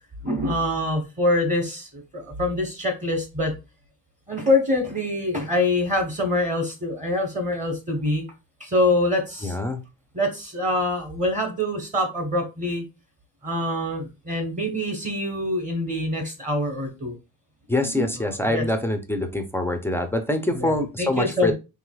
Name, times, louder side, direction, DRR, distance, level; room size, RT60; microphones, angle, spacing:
voice 1, 0.2-3.5 4.3-8.2 8.6-9.6 10.1-12.8 13.4-17.1 17.8-18.6 20.5-21.5, left 1 dB, 20° right, 4 dB, 1.0 m, -25 dB
voice 2, 9.4-9.8 17.7-21.5, left 1 dB, 5° left, 6 dB, 0.4 m, -25 dB
4.8 x 3.3 x 2.3 m, 0.27 s
cardioid pair, 135°, 38 cm